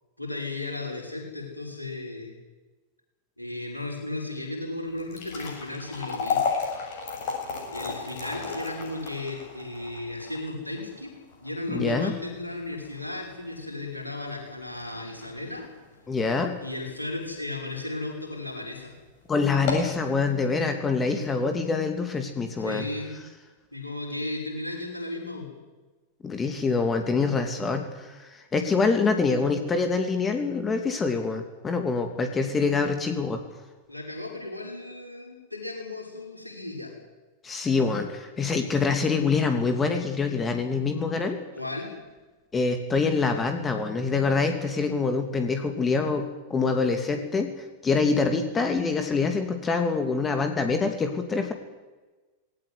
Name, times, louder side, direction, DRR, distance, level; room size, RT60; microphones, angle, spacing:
voice 1, 0.2-2.4 3.4-6.4 7.7-11.1 11.4-15.7 16.6-18.9 22.6-23.2 23.7-25.5 33.9-36.9 41.5-41.9, left 2 dB, 85° left, 0 dB, 6.2 m, -35 dB
sound 1, 4.9-17.2 17.6-17.7 18.4-18.6 18.9-19.0 19.5-20.0, left 5 dB, 50° left, 7.9 m, -34 dB
voice 2, 11.7-12.1 16.1-16.6 19.3-22.9 26.2-33.4 37.4-41.4 42.5-47.5 47.8-51.5, left 4 dB, 20° left, 6 dB, 2.7 m, -25 dB
19.5 x 18.5 x 9.8 m, 1.2 s
figure-of-eight pair, 90°, 0 cm